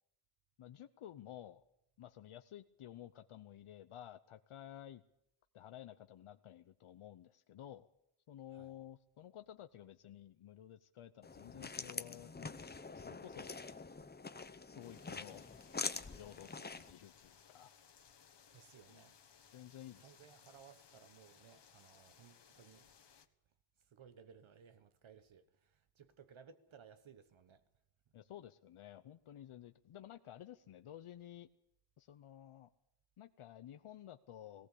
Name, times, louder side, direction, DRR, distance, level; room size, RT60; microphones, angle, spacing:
voice 1, 0.6-1.6 2.0-5.0 5.5-7.9 8.3-13.6 14.7-15.5 16.1-17.7 19.5-20.1 28.1-31.5 32.0-32.7 33.2-34.7, left 11 dB, 75° left, 0.8 m, -53 dB
sound 1, 11.2-16.9, left 4 dB, 20° left, 0.7 m, -45 dB
sound 2, 14.8-23.3, left 7 dB, 55° left, 1.4 m, -64 dB
voice 2, 18.5-19.2 20.0-22.9 23.8-27.6, right 7 dB, 70° right, 1.2 m, -60 dB
18.5 x 18.0 x 8.4 m
wide cardioid pair, 170°, 50 cm